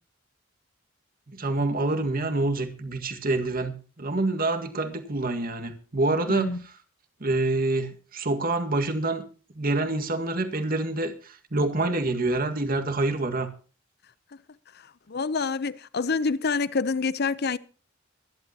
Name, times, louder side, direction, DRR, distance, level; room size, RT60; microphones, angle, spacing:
voice 1, 1.3-6.5 7.2-9.2 9.6-13.5, right 2 dB, 50° right, 1.9 m, -27 dB
voice 2, 6.3-6.6 15.1-17.6, left 4 dB, 55° left, 0.7 m, -27 dB
23.0 x 11.5 x 2.9 m
head